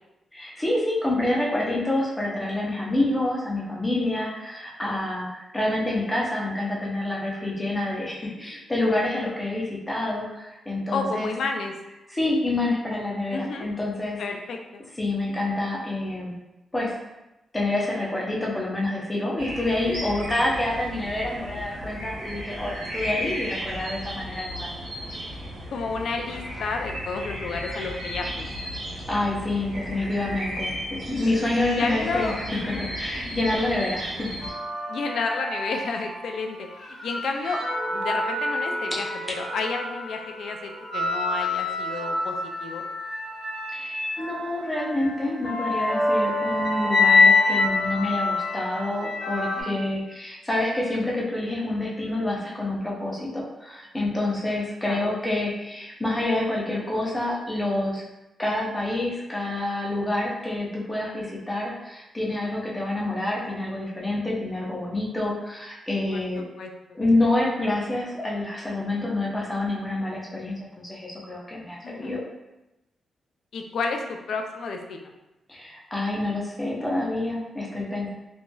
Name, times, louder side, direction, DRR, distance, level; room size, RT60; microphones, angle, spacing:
voice 1, 0.3-11.3 12.1-14.2 15.0-16.4 16.7-17.0 17.5-24.7 29.1-34.3 43.7-58.0 58.4-66.4 66.9-72.2 75.5-78.1, left 2 dB, 15° left, -4 dB, 0.7 m, -27 dB
voice 2, 10.9-11.7 13.3-13.7 14.2-14.8 25.7-28.5 31.8-32.9 34.9-42.8 49.5-49.9 54.8-55.1 66.1-66.7 71.8-72.2 73.5-75.1, left 4 dB, 75° left, 3 dB, 0.3 m, -31 dB
sound 1, 19.4-34.5, equal, 85° right, 1.2 m, -34 dB
sound 2, 34.4-36.3 36.8-49.6, left 3 dB, 45° left, 1.0 m, -26 dB
3.0 x 2.6 x 2.2 m, 0.98 s
cardioid pair, 100°, 0 cm